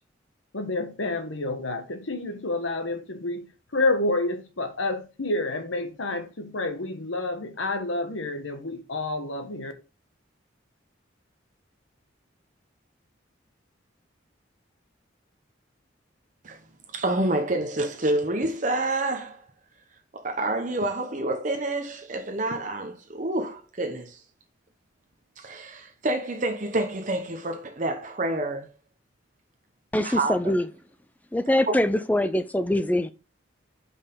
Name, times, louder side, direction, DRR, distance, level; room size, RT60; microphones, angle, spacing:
voice 1, 0.5-3.5 3.7-9.7, left 2 dB, 85° left, 1.2 m, -29 dB
voice 2, 16.9-19.4 20.1-24.2 25.4-28.7 30.0-30.5 31.7-31.8, right 2 dB, 40° right, 0.8 m, -28 dB
voice 3, 29.9-30.6 31.3-33.1, left 1 dB, 10° left, 0.4 m, -23 dB
6.3 x 5.5 x 3.7 m
head